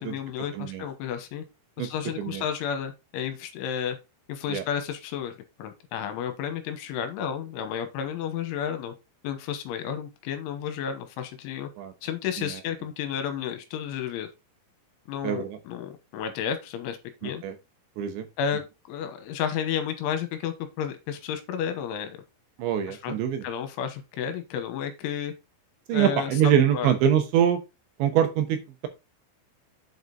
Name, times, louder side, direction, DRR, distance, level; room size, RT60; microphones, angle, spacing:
voice 1, 0.0-1.4 1.8-4.0 4.3-5.3 5.6-8.9 9.2-11.7 12.0-14.3 15.1-17.4 18.4-18.6 18.9-22.2 22.9-25.3 25.9-26.9, left 8 dB, 80° left, 8 dB, 3.5 m, -32 dB
voice 2, 15.2-15.6 17.2-17.6 18.0-18.3 22.6-23.4 25.9-27.6 28.0-28.9, right 9 dB, 75° right, 7 dB, 3.1 m, -24 dB
7.9 x 5.2 x 4.0 m, 0.25 s
omnidirectional pair, 5.7 m